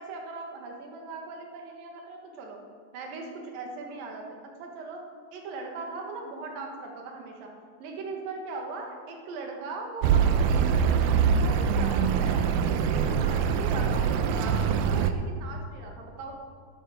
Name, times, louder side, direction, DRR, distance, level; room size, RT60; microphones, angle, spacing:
voice 1, 0.0-2.6 2.9-4.2 4.6-5.0 5.3-7.5 7.8-12.5 12.8-16.3, right 3 dB, 70° right, 1 dB, 3.2 m, -39 dB
Accelerating revving vroom, 10.0-15.1, right 7 dB, 85° right, 1.8 m, -24 dB
12.0 x 11.5 x 5.1 m, 2.1 s
omnidirectional pair, 4.4 m